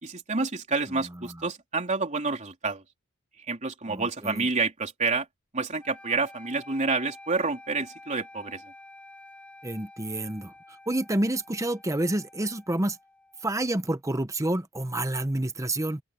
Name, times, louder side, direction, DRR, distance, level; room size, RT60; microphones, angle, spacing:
voice 1, 0.0-2.8 3.4-5.3 5.5-8.6, right 4 dB, 35° right, 3.6 m, -29 dB
voice 2, 3.9-4.5 9.6-10.5 10.9-13.0 13.4-16.0, right 1 dB, 15° right, 1.0 m, -28 dB
sound 1, 5.8-13.9, left 2 dB, 5° left, 4.6 m, -50 dB
open air
head